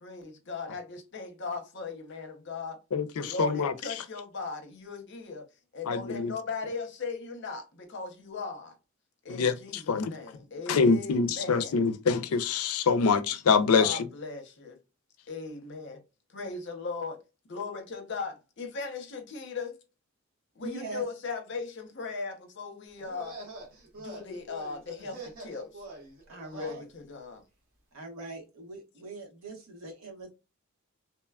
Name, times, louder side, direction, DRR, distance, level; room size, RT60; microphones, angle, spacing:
voice 1, 0.0-2.8 3.1-5.5 5.7-8.7 9.2-11.7 13.7-14.8 15.3-16.0 16.3-17.2 17.5-19.8 20.6-23.4 24.0-25.8 26.5-27.4, left 4 dB, 55° left, 0.7 m, -38 dB
voice 2, 2.9-3.7 5.9-6.3 9.3-9.5 9.9-10.1 10.7-14.0, left 5 dB, 90° left, 0.4 m, -25 dB
voice 3, 20.6-21.0 26.3-26.8 27.9-30.3, right 2 dB, 80° right, 1.1 m, -41 dB
sound 1, 23.0-26.8, right 2 dB, 40° right, 1.0 m, -45 dB
3.0 x 2.2 x 2.2 m
head